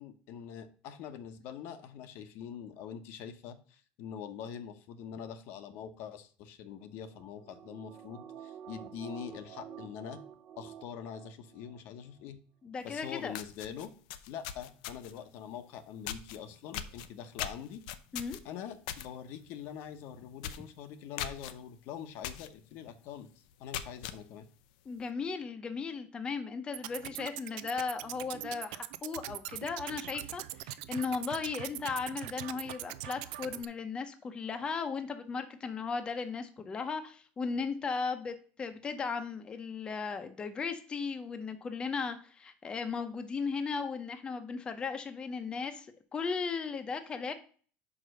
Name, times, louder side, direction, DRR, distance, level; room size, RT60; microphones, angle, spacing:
voice 1, 0.0-10.2 10.6-12.4 12.8-13.9 14.3-17.8 18.4-24.5, left 8 dB, 65° left, 9 dB, 0.9 m, -44 dB
sound 1, 7.0-11.8 12.1-12.2, right 9 dB, 50° right, 0.8 m, -49 dB
voice 2, 12.6-13.3 18.1-18.4 24.9-47.3, left 5 dB, 20° left, 8 dB, 0.7 m, -36 dB
sound 2, 12.9-13.0 13.3-15.2 16.1-16.4 16.7-19.1 19.4-19.7 20.0-20.1 20.4-20.7 21.2-21.5 22.2-22.5 22.9-23.0 23.5-24.2, left 10 dB, 90° left, 0.6 m, -39 dB
sound 3, 26.7-33.7, right 16 dB, 85° right, 0.5 m, -42 dB
5.3 x 5.0 x 6.2 m, 0.43 s
cardioid pair, 140°, 4 cm